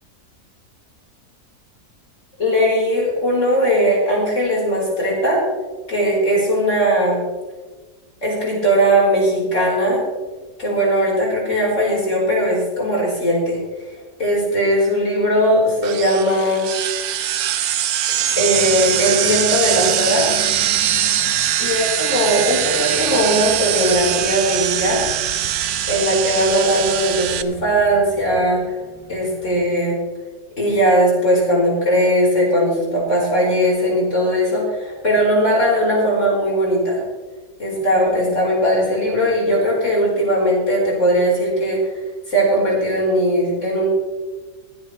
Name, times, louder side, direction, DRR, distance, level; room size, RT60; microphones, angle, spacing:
voice 1, 2.4-5.4 5.9-7.2 8.2-10.0 10.6-13.6 14.2-16.7 16.9-17.0 18.1-20.3 21.6-25.0 25.9-28.6 29.1-30.0 30.6-37.0 37.6-41.9 42.3-43.9, equal, 50° left, -4 dB, 4.9 m, -19 dB
sound 1, 15.8-27.4, right 11 dB, 70° right, 1.1 m, -22 dB
sound 2, 18.3-29.6, left 2 dB, 20° left, 2.7 m, -38 dB
23.5 x 8.3 x 3.3 m, 1.3 s
omnidirectional pair, 1.7 m